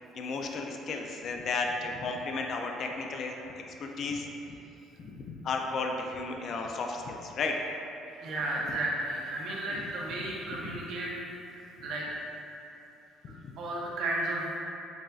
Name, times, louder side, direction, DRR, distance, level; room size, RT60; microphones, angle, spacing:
voice 1, 0.1-3.3 3.8-4.5 5.0-7.5 9.7-9.9 10.2-10.6 13.3-13.4, left 3 dB, 45° left, 2 dB, 0.3 m, -34 dB
voice 2, 8.2-12.0 13.3-14.5, right 2 dB, 60° right, -3 dB, 0.7 m, -34 dB
7.2 x 2.5 x 2.3 m, 3.0 s
cardioid pair, 150°, 0 cm